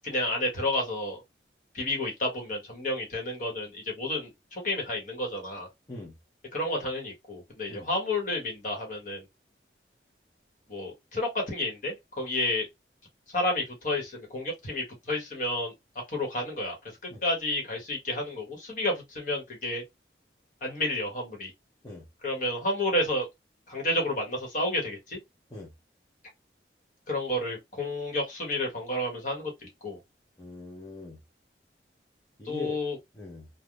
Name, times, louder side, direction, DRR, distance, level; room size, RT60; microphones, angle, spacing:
voice 1, 0.0-1.2 1.7-5.7 6.5-9.2 10.7-12.7 13.3-15.7 16.1-16.8 17.2-19.8 20.6-21.5 22.2-23.3 23.7-25.2 27.1-30.0 32.4-33.0, left 1 dB, 45° left, 1.2 m, -30 dB
voice 2, 30.4-31.2 32.4-32.8 33.1-33.5, left 3 dB, 20° left, 0.6 m, -41 dB
3.4 x 2.1 x 2.3 m
head